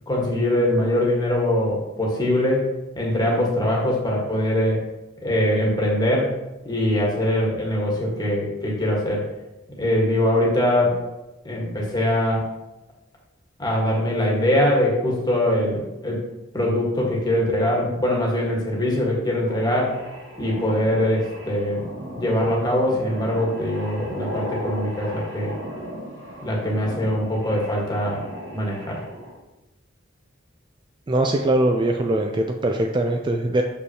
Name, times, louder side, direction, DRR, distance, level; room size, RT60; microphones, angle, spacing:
voice 1, 0.1-2.7 2.9-4.8 5.2-6.4 6.6-9.3 9.8-11.0 11.4-12.5 13.6-16.3 16.5-20.0 20.4-21.8 22.1-25.5 26.4-28.2 28.5-29.0, left 1 dB, 20° left, -2 dB, 1.4 m, -22 dB
sound 1, 19.5-29.4, equal, 70° right, 1.2 m, -37 dB
voice 2, 31.1-33.6, right 1 dB, 25° right, 3 dB, 0.3 m, -21 dB
6.3 x 5.3 x 2.8 m, 1.0 s
head